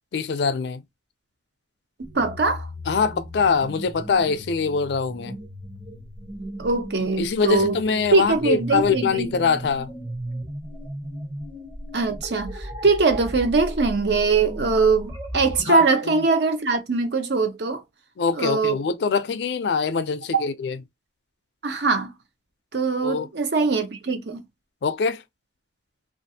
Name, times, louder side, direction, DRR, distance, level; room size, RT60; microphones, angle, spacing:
voice 1, 0.1-0.8 2.9-5.4 7.2-9.9 15.7-16.2 18.2-20.8 23.0-23.3 24.8-25.2, left 5 dB, 70° left, 0.4 m, -23 dB
sound 1, 2.0-15.8, equal, 25° right, 0.7 m, -36 dB
voice 2, 2.1-2.7 6.6-7.8 8.1-9.3 11.9-17.8 18.3-18.8 20.3-20.4 21.6-22.1 22.7-24.4, right 4 dB, 70° right, 0.6 m, -22 dB
2.5 x 2.4 x 2.7 m
head